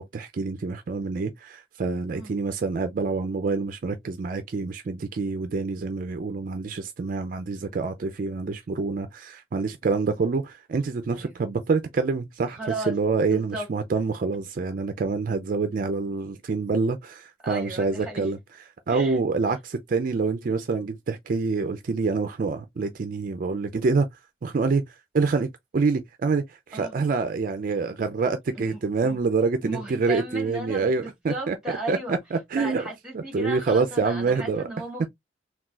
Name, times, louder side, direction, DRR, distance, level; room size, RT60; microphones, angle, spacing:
voice 1, 0.0-12.6 12.9-18.4 18.9-24.1 24.4-25.5 25.7-31.6 31.9-32.9 33.1-34.7, right 4 dB, 45° right, 0.4 m, -26 dB
voice 2, 12.5-12.9 13.3-13.7 17.4-18.3 18.9-19.2 26.7-26.9 28.5-29.2 29.6-32.2 32.6-35.1, right 2 dB, 5° right, 1.6 m, -36 dB
3.8 x 2.3 x 2.3 m
head